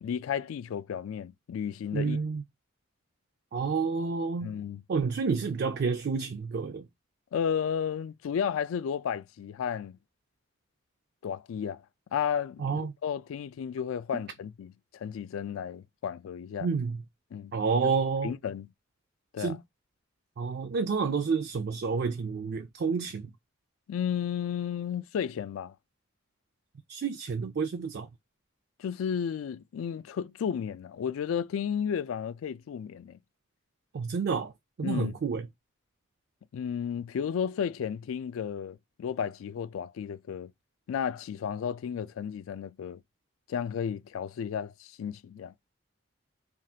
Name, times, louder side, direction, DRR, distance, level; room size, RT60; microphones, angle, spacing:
voice 1, 0.0-2.2 4.4-4.8 7.3-10.0 11.2-11.8 12.1-16.7 17.3-17.5 17.8-17.9 18.2-18.7 19.3-19.6 23.9-25.7 28.8-33.2 34.8-35.1 36.5-40.5 40.9-43.0 43.5-45.5, left 8 dB, 90° left, 0.3 m, -33 dB
voice 2, 1.9-2.4 3.5-4.6 4.9-6.9 12.6-12.9 16.6-17.0 17.5-18.3 19.4-19.6 20.4-23.3 26.9-28.1 33.9-34.5 34.8-35.4, right 5 dB, 55° right, 0.4 m, -29 dB
3.4 x 2.4 x 2.7 m
head